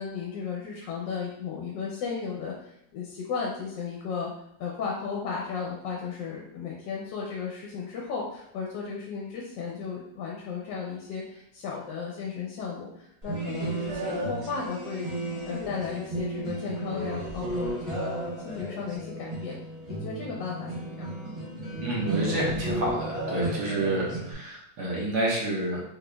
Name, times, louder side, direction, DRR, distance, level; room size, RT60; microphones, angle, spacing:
voice 1, 0.0-4.3 4.6-19.5 19.9-21.1, left 5 dB, 75° left, -3 dB, 1.3 m, -35 dB
sound 1, 13.2-24.3, right 1 dB, 35° right, 1.2 m, -34 dB
voice 2, 21.8-25.8, right 2 dB, 65° right, -3 dB, 1.5 m, -28 dB
4.1 x 3.2 x 2.2 m, 0.76 s
omnidirectional pair, 2.0 m